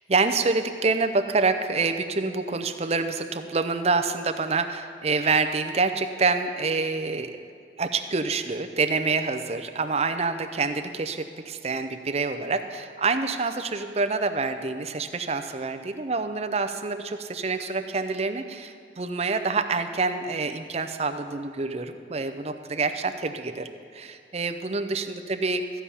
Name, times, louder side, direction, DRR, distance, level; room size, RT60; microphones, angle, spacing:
voice 1, 0.0-7.4 7.8-25.6, right 4 dB, 35° right, 8 dB, 0.6 m, -27 dB
14.5 x 5.7 x 8.4 m, 2.3 s
head